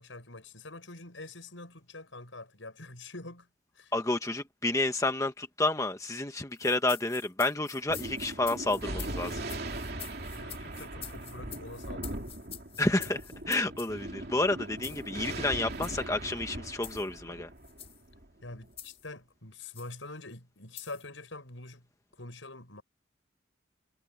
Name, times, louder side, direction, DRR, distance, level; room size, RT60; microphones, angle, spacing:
voice 1, 0.0-3.5 3.7-3.9 10.3-12.3 18.4-21.8 22.2-22.8, left 2 dB, 85° left, 6.7 m, -45 dB
voice 2, 3.9-9.4 12.8-13.2 13.5-17.5, left 2 dB, 15° left, 1.1 m, -30 dB
sound 1, 6.6-13.9 14.8-15.1 15.7-16.0 16.8-17.1 17.6-18.0 18.8-19.1 19.7-19.9 20.8-21.1, left 11 dB, 30° left, 4.3 m, -46 dB
Thunder, 7.9-18.7, right 1 dB, 55° right, 3.0 m, -40 dB
head